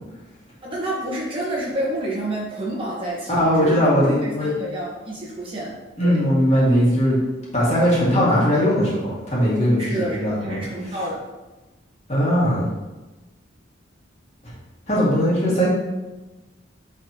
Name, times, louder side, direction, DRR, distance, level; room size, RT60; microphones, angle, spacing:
voice 1, 0.6-3.9 4.2-6.2 9.8-11.2, right 1 dB, 25° right, -5 dB, 1.3 m, -29 dB
voice 2, 3.3-4.5 6.0-7.2 7.5-10.6 12.1-12.7 14.4-14.5 14.9-15.7, equal, 35° left, -7 dB, 2.0 m, -19 dB
8.9 x 3.9 x 3.0 m, 1.1 s
head